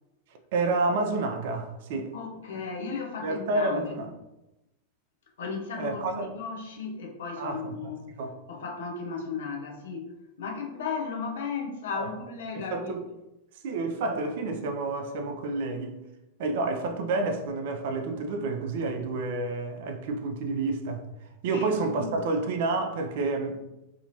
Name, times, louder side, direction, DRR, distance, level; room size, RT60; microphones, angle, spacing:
voice 1, 0.5-2.1 3.2-4.1 5.8-6.3 7.4-7.9 8.2-8.3 12.0-12.1 12.6-13.0 13.6-16.0 16.4-21.0 21.4-23.6, right 3 dB, 50° right, 0.4 m, -29 dB
voice 2, 2.1-4.0 5.4-8.1 8.5-13.0 21.5-22.2, left 5 dB, 60° left, 0.5 m, -35 dB
2.7 x 2.5 x 2.7 m
figure-of-eight pair, 90°, 0 cm